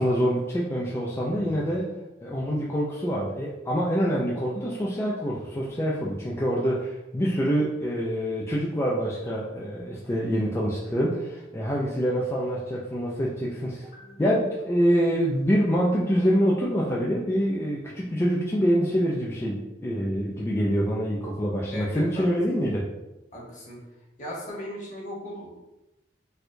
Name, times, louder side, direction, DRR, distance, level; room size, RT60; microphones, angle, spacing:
voice 1, 0.0-1.9 2.2-13.8 14.2-22.8, equal, 15° left, -5 dB, 0.4 m, -25 dB
voice 2, 13.9-14.2 21.7-22.2 23.3-23.8 24.2-25.6, equal, 45° left, -3 dB, 1.1 m, -38 dB
4.4 x 2.3 x 2.6 m, 0.99 s
head